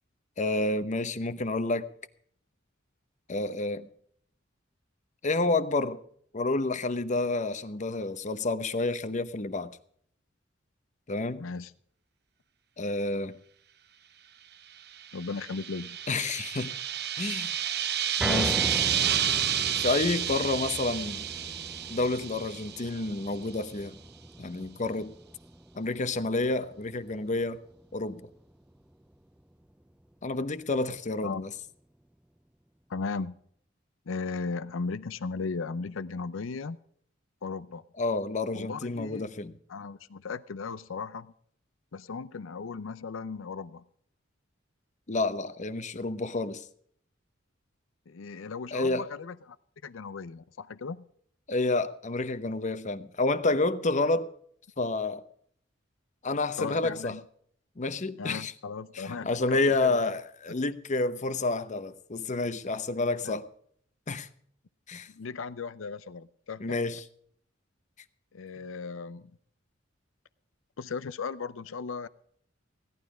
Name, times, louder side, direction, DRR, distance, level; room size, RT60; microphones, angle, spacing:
voice 1, 0.4-1.9 3.3-3.9 5.2-6.0 6.3-9.8 11.1-11.4 12.8-13.4 16.1-16.8 17.2-17.6 18.2-18.7 19.8-21.3 21.9-24.0 24.4-25.1 25.7-27.6 27.9-28.2 30.2-31.5 38.0-39.5 45.1-46.7 48.7-49.1 51.5-54.3 54.8-55.2 56.2-57.1 57.8-58.5 58.9-63.4 64.1-64.3 64.9-65.1 66.6-67.0, left 2 dB, 40° left, 0.8 m, -29 dB
voice 2, 11.4-11.7 15.1-16.0 31.2-31.5 32.9-33.4 34.1-36.8 37.4-37.8 38.5-39.3 39.7-41.3 41.9-43.8 48.1-49.6 49.8-51.1 56.6-57.2 58.2-59.9 63.2-63.3 65.1-66.8 68.3-69.3 70.8-72.1, left 4 dB, 85° left, 0.6 m, -36 dB
sound 1, 14.9-23.3, right 10 dB, 55° right, 0.8 m, -30 dB
sound 2, 18.2-30.4 30.8-30.9 31.4-31.5, equal, 5° right, 0.5 m, -40 dB
16.5 x 11.5 x 4.9 m
head